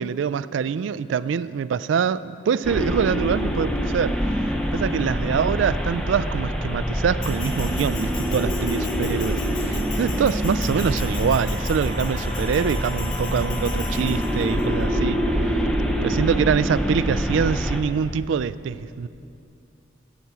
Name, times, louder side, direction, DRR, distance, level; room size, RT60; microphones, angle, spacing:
voice 1, 0.0-4.1 4.7-15.2 16.0-19.1, right 7 dB, 80° right, 17 dB, 0.3 m, -24 dB
sound 1, 2.6-17.8, equal, 5° left, 0.6 m, -25 dB
Bell, 7.2-14.6, left 5 dB, 75° left, 1.3 m, -39 dB
Wind instrument woodwind instrument, 10.9-15.7, left 2 dB, 20° left, 2.0 m, -41 dB
10.0 x 8.1 x 7.3 m, 2.7 s
head